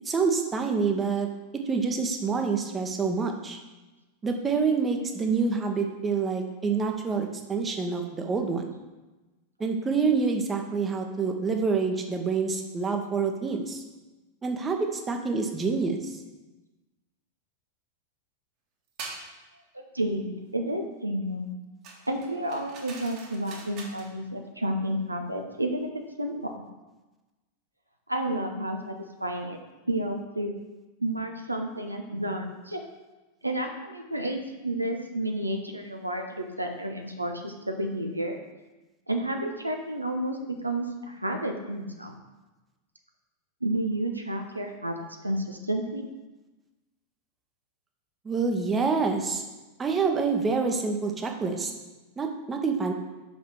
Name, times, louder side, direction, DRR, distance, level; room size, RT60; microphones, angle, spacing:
voice 1, 0.0-1.3 1.7-3.6 4.2-8.7 9.6-13.8 14.4-16.2 48.2-49.4 49.8-51.7 52.2-52.9, right 4 dB, 15° right, 4 dB, 1.0 m, -27 dB
sound 1, 19.0-19.3 21.8-24.1, right 4 dB, 40° right, 1.5 m, -43 dB
voice 2, 19.7-21.5 22.1-26.5 28.1-28.9 29.2-29.6 29.9-30.5 31.0-32.8 33.4-38.4 39.1-40.4 40.6-42.1 43.6-45.0 45.2-46.1, right 1 dB, 85° right, 3 dB, 0.7 m, -31 dB
5.6 x 5.2 x 6.1 m, 1.1 s
figure-of-eight pair, 90°, 0 cm